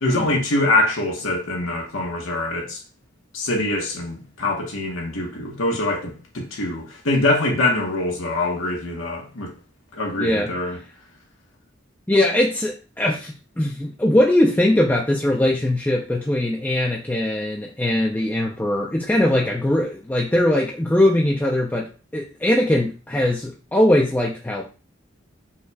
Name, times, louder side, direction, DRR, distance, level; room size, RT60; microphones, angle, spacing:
voice 1, 0.0-2.8 3.3-9.5 9.9-10.8, left 2 dB, 85° left, 1.2 m, -24 dB
voice 2, 10.2-10.5 12.1-24.7, left 1 dB, 10° left, 0.4 m, -21 dB
5.4 x 2.4 x 3.2 m
head